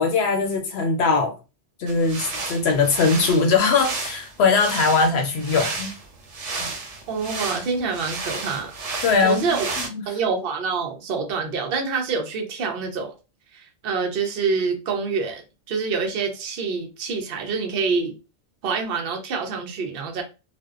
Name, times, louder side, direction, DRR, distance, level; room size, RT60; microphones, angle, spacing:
voice 1, 0.0-1.3 1.8-5.9 6.6-6.7 9.0-9.5 9.8-10.0, left 4 dB, 70° left, 0.8 m, -21 dB
sound 1, 1.9-9.9, right 3 dB, 80° right, 1.0 m, -32 dB
voice 2, 7.1-8.7 9.2-9.7 10.1-13.1 13.5-18.1 18.6-20.2, right 5 dB, 60° right, 0.8 m, -26 dB
2.5 x 2.1 x 2.3 m
omnidirectional pair, 1.2 m